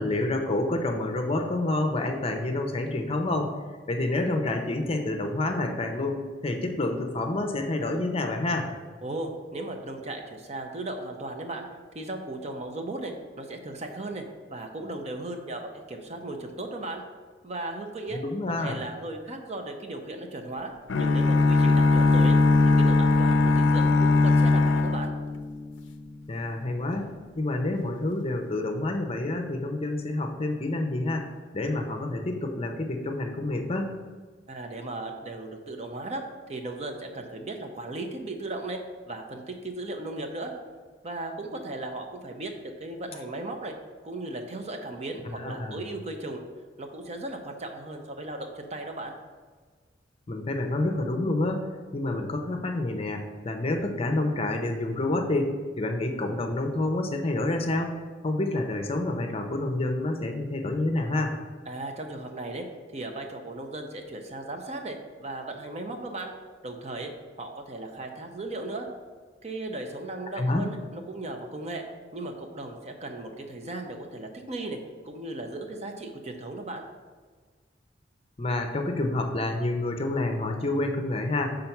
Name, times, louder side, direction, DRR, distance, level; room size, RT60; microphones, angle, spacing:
voice 1, 0.0-3.5 3.9-8.7 18.1-18.8 26.3-27.1 27.4-33.9 45.3-45.8 50.3-61.3 70.4-70.7 78.4-81.6, left 2 dB, 30° left, 4 dB, 0.6 m, -28 dB
voice 2, 9.0-11.7 11.9-14.2 14.5-17.0 17.4-18.2 18.6-22.4 22.6-25.1 34.5-36.2 36.5-38.8 39.1-40.5 41.0-43.8 44.0-46.4 46.8-49.1 61.7-62.6 62.9-66.3 66.6-67.1 67.4-68.9 69.4-71.9 72.1-74.8 75.0-76.8, right 2 dB, 35° right, 4 dB, 0.7 m, -36 dB
sound 1, 20.9-25.9, left 3 dB, 85° left, 0.4 m, -20 dB
5.7 x 3.8 x 5.8 m, 1.5 s
head